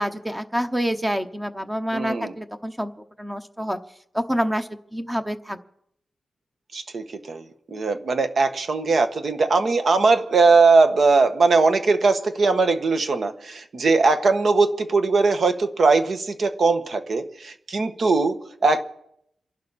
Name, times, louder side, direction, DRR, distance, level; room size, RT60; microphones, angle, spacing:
voice 1, 0.0-2.9 3.2-3.8 4.1-5.6, equal, 10° right, 7 dB, 0.9 m, -27 dB
voice 2, 1.9-2.3 6.7-18.8, right 3 dB, 55° right, 7 dB, 1.4 m, -20 dB
28.0 x 11.5 x 4.3 m, 0.74 s
wide cardioid pair, 130°, 0 cm